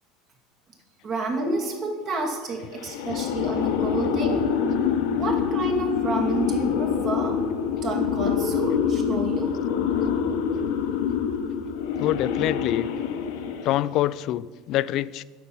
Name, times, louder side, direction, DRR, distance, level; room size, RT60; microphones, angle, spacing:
voice 1, 1.0-4.5 5.1-7.4 7.8-9.5 9.9-10.1, right 2 dB, 40° right, 1 dB, 2.0 m, -29 dB
sound 1, 2.8-13.9, left 7 dB, 80° left, 0.9 m, -26 dB
voice 2, 12.0-12.9 13.6-15.2, left 14 dB, 50° left, 18 dB, 0.3 m, -25 dB
9.4 x 5.8 x 6.9 m, 1.5 s
supercardioid pair, 130°, 0 cm